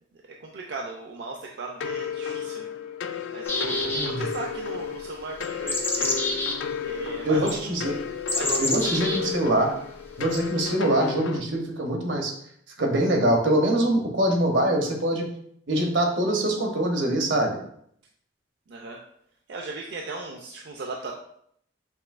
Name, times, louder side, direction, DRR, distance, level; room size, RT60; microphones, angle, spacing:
voice 1, 0.1-2.7 3.3-6.1 6.8-7.8 8.3-9.3 18.7-19.0 19.5-21.1, right 3 dB, 65° right, 0 dB, 0.4 m, -37 dB
sound 1, 1.8-11.4, left 6 dB, 80° left, 0.3 m, -33 dB
sound 2, 3.4-4.4 5.4-6.6 7.5-7.6 8.3-9.2 10.3-10.4, left 2 dB, 10° left, 0.4 m, -27 dB
voice 2, 3.9-4.2 7.2-7.9 8.6-9.7 10.2-12.3 12.8-15.3 15.7-17.6, right 1 dB, 85° right, 1 dB, 0.9 m, -23 dB
5.9 x 2.6 x 2.4 m, 0.68 s
head